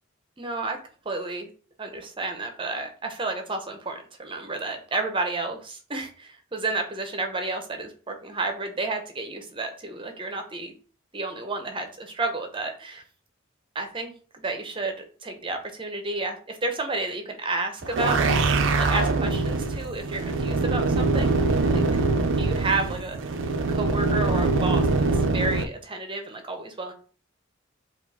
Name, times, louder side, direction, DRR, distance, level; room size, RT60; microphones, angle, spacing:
voice 1, 0.4-0.8 1.0-1.5 1.8-10.7 11.1-13.0 13.7-15.0 15.2-18.3 18.8-21.4 21.7-21.8 22.4-23.4 23.7-24.9 25.1-26.9, right 3 dB, 25° right, 5 dB, 0.7 m, -31 dB
sound 1, 17.8-25.7, right 3 dB, 70° right, 0.4 m, -23 dB
4.4 x 2.5 x 4.1 m, 0.40 s
head